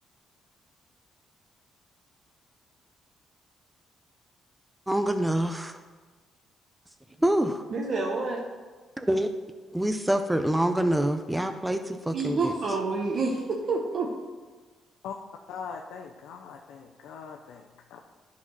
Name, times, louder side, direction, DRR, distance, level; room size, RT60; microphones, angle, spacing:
voice 1, 4.9-5.8 7.2-7.6 9.0-9.3 9.7-12.5, right 1 dB, 5° right, 7 dB, 0.6 m, -26 dB
voice 2, 7.7-8.4 12.1-14.1, right 3 dB, 55° right, -1 dB, 1.0 m, -28 dB
voice 3, 15.5-18.0, left 6 dB, 85° left, 2 dB, 0.6 m, -41 dB
10.5 x 4.2 x 6.0 m, 1.4 s
cardioid pair, 90°, 0 cm